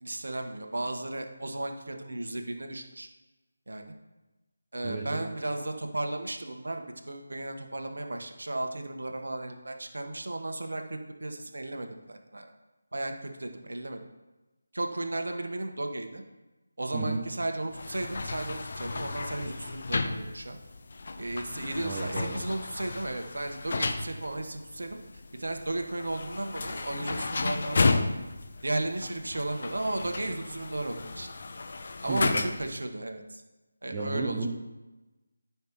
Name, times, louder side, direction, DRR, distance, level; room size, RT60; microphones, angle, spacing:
voice 1, 0.0-3.1 3.7-3.9 4.7-12.5 12.9-14.0 14.7-16.2 16.8-20.6 21.2-25.0 25.4-28.1 28.6-31.3 32.0-33.4 33.8-34.5, right 2 dB, 55° right, 4 dB, 1.2 m, -34 dB
voice 2, 4.8-5.3 16.9-17.2 21.8-22.5 32.1-32.4 33.9-34.5, right 3 dB, 15° right, -4 dB, 0.9 m, -33 dB
sound 1, 17.7-32.8, left 3 dB, 40° left, 0.6 m, -33 dB
14.0 x 5.8 x 3.0 m, 1.1 s
figure-of-eight pair, 160°, 0 cm